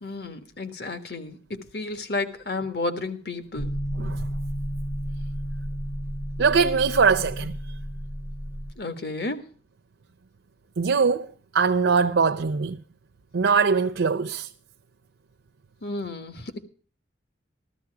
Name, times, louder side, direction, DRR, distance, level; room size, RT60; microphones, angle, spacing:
voice 1, 0.0-1.4 1.7-3.7 8.8-9.4 15.8-16.6, left 2 dB, 60° left, 1.6 m, -32 dB
sound 1, 3.6-8.7, equal, 25° left, 0.6 m, -32 dB
voice 2, 6.4-7.6 10.8-11.3 11.5-12.8 13.3-14.5, right 5 dB, 90° right, 0.6 m, -22 dB
14.0 x 13.0 x 4.7 m
head